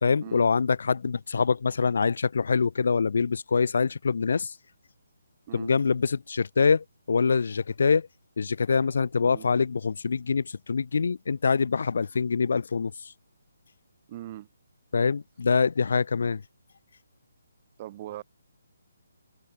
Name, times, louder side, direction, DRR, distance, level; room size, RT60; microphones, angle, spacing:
voice 1, 0.0-4.5 5.5-8.1 8.4-13.1 14.9-16.4, left 5 dB, 65° left, 0.3 m, -25 dB
voice 2, 14.1-14.5 17.8-18.2, right 14 dB, 25° right, 0.5 m, -40 dB
hypercardioid pair, 170°, 0 cm